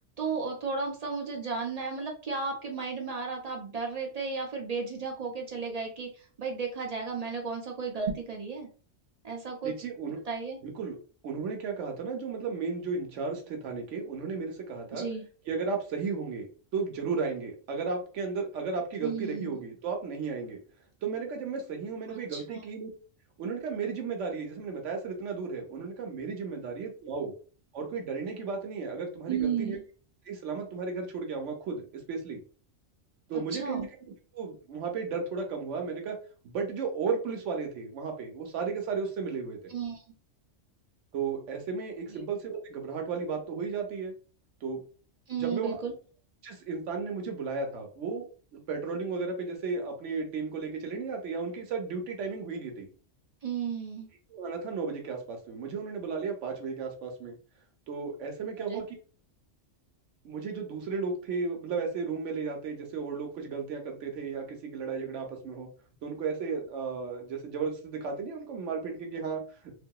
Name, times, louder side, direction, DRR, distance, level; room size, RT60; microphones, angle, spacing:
voice 1, 0.2-6.1 6.4-8.7 9.2-9.7 10.3-10.6 14.9-15.2 19.0-19.6 22.1-22.6 29.3-29.8 33.5-33.9 39.7-40.0 42.1-42.2 45.3-45.9 53.4-54.1 58.7-58.8, right 5 dB, 45° right, 1 dB, 0.5 m, -34 dB
voice 2, 9.6-10.2 10.6-11.0 11.2-15.1 15.5-16.5 16.7-20.6 21.0-22.9 23.4-27.3 27.7-29.8 30.3-32.4 33.3-33.9 34.3-36.2 36.4-39.7 41.1-44.1 44.6-44.8 45.3-45.8 46.4-52.9 54.3-57.4 57.9-58.9 60.2-65.7 66.0-69.4, right 5 dB, 80° right, 3 dB, 1.0 m, -34 dB
2.7 x 2.5 x 2.2 m, 0.39 s
omnidirectional pair, 1.3 m